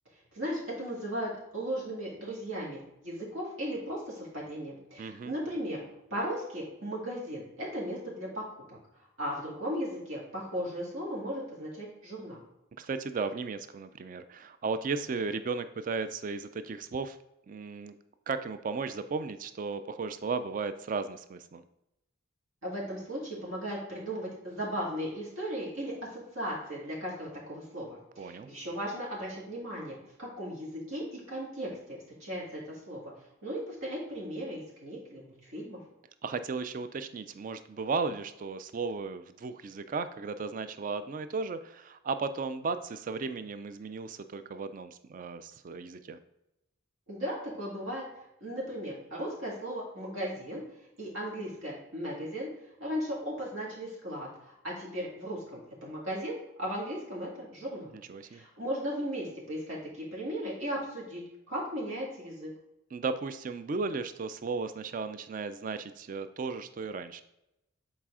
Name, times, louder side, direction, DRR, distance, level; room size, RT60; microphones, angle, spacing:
voice 1, 0.3-5.8 6.1-8.4 8.7-8.8 9.2-12.4 22.6-33.1 33.4-35.8 47.1-48.0 48.4-50.6 51.0-52.5 52.8-57.9 58.3-62.5, equal, 75° right, -5 dB, 2.1 m, -36 dB
voice 2, 5.0-5.3 12.8-17.2 17.5-17.9 18.3-21.6 28.2-28.5 36.2-46.2 58.1-58.4 62.9-67.2, right 4 dB, 40° right, 11 dB, 0.3 m, -35 dB
7.3 x 4.1 x 3.6 m, 0.87 s
head